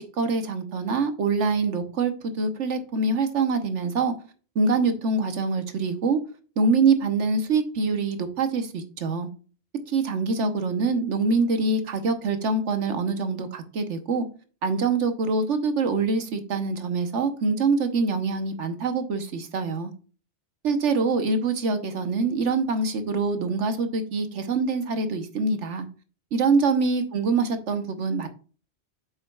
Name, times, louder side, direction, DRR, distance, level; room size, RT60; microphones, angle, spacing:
voice 1, 0.0-4.1 4.5-6.2 6.6-9.3 9.9-14.2 14.6-19.9 20.6-25.9 26.3-28.3, right 4 dB, 85° right, 1.3 m, -25 dB
8.6 x 6.4 x 2.3 m
omnidirectional pair, 1.2 m